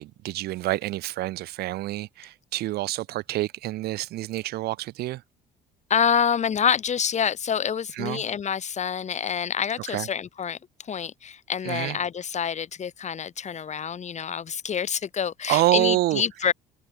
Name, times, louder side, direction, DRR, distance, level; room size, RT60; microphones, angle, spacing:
voice 1, 0.0-5.2 8.0-8.2 9.9-10.1 11.7-12.0 15.5-16.2, right 17 dB, 70° right, 6.0 m, -27 dB
voice 2, 5.9-16.5, left 7 dB, 45° left, 7.7 m, -27 dB
supercardioid pair, 75°, 17 cm